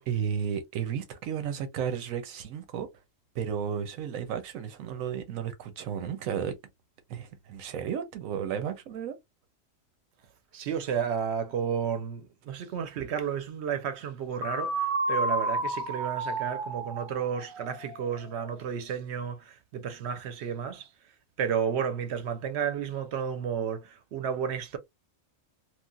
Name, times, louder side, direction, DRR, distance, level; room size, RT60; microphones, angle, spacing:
voice 1, 0.1-2.9 3.3-6.5 7.1-9.2, right 8 dB, 85° right, 1.1 m, -33 dB
voice 2, 10.5-20.9 21.4-24.8, right 7 dB, 65° right, 0.9 m, -32 dB
sound 1, 14.4-18.3, right 2 dB, 30° right, 0.6 m, -31 dB
3.1 x 2.4 x 2.3 m
omnidirectional pair, 1.4 m